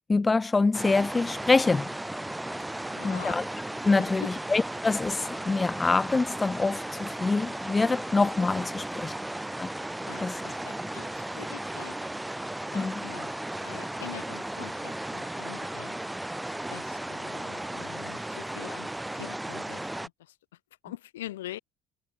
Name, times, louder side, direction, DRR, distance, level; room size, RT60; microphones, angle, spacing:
voice 1, 0.1-1.9 3.0-3.5 3.8-9.1 9.6-9.7 10.2-10.3 12.7-13.0, left 3 dB, 20° left, 0.5 m, -25 dB
sound 1, 0.7-20.1, right 1 dB, 10° right, 1.9 m, -35 dB
voice 2, 2.8-3.4 4.0-4.3 10.1-12.0 12.7-13.3 13.6-16.0 16.7-18.9 19.1-20.3 20.8-21.6, left 14 dB, 90° left, 2.2 m, -44 dB
hypercardioid pair, 65°, 0 cm